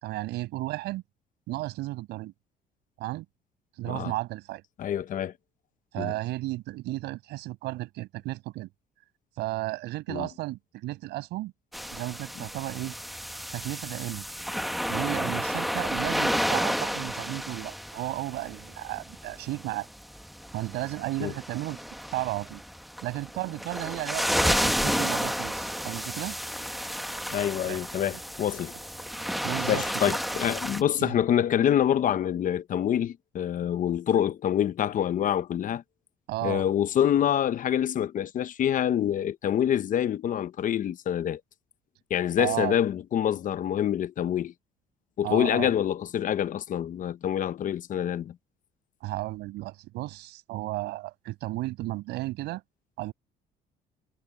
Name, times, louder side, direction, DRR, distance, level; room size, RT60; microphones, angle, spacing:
voice 1, 0.0-1.0 1.5-2.3 3.0-3.2 3.8-4.6 5.9-8.7 9.4-11.5 11.9-13.0 13.5-14.2 14.9-19.9 20.5-21.8 22.1-22.6 23.0-26.4 27.7-28.1 29.4-30.2 31.0-31.2 36.3-36.6 42.4-42.8 45.2-45.7 49.0-52.6 53.0-53.1, right 18 dB, 85° right, 6.3 m, -34 dB
voice 2, 4.8-5.3 6.0-6.1 10.1-10.3 21.2-21.3 27.3-28.7 29.7-35.8 36.4-41.4 42.1-44.5 45.2-48.4, left 10 dB, 50° left, 0.9 m, -26 dB
sound 1, 11.7-30.8, equal, ahead, 1.3 m, -31 dB
cardioid pair, 110°, 17 cm